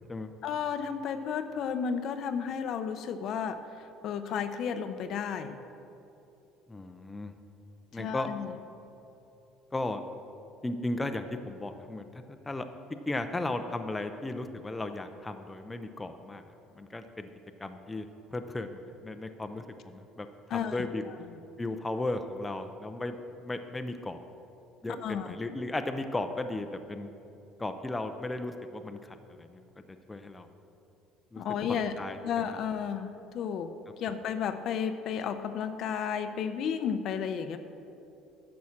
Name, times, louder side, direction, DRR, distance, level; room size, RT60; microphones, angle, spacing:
voice 1, 0.4-5.6 7.9-8.5 20.5-20.9 25.0-25.4 31.4-32.0 32.2-33.7 34.0-37.6, left 7 dB, 55° left, 9 dB, 0.6 m, -33 dB
voice 2, 6.7-7.3 7.9-8.3 9.7-10.0 10.6-16.4 16.7-17.3 17.6-21.0 21.6-23.2 23.4-24.2 24.8-27.1 27.6-29.6 30.1-30.5 31.3-31.4 32.0-32.2, left 2 dB, 10° left, 7 dB, 0.5 m, -35 dB
10.5 x 6.3 x 7.1 m, 2.9 s
cardioid pair, 130°, 0 cm